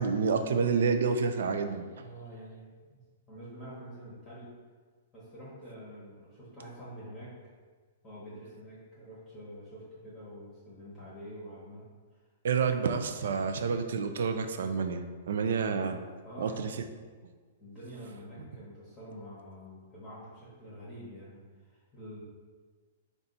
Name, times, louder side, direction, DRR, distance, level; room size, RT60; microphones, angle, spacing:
voice 1, 0.0-1.9 12.4-16.0 16.4-16.7, right 5 dB, 75° right, 7 dB, 0.3 m, -29 dB
voice 2, 2.0-3.0 3.3-4.5 5.1-7.5 8.0-11.8 12.1-12.2 12.6-12.7 16.2-16.8 17.6-22.2, equal, 10° left, -10 dB, 0.9 m, -47 dB
4.0 x 2.3 x 3.8 m, 1.5 s
hypercardioid pair, 160°, 0 cm